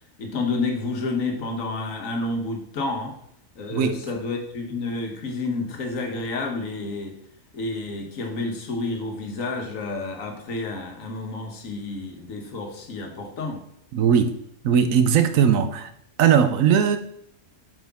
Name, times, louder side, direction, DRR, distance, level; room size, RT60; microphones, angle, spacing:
voice 1, 0.2-3.1 3.5-7.1 7.5-13.6, left 3 dB, 85° left, 1.6 m, -30 dB
voice 2, 3.7-4.0 13.9-14.3 14.6-15.9 16.2-17.0, right 8 dB, 80° right, 1.1 m, -19 dB
7.6 x 5.1 x 3.5 m
omnidirectional pair, 1.4 m